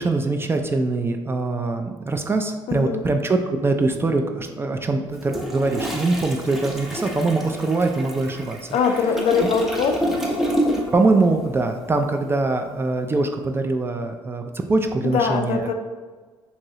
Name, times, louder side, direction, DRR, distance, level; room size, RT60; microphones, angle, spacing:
voice 1, 0.0-8.6 9.4-9.5 10.9-15.6, right 3 dB, 20° right, 5 dB, 0.3 m, -23 dB
voice 2, 2.7-3.0 8.7-10.1 15.0-15.7, left 5 dB, 60° left, 6 dB, 0.4 m, -22 dB
Toilet flush, 5.1-11.1 11.4-11.6, equal, ahead, 0.7 m, -28 dB
3.0 x 2.7 x 2.7 m, 1.4 s
supercardioid pair, 70°, 11 cm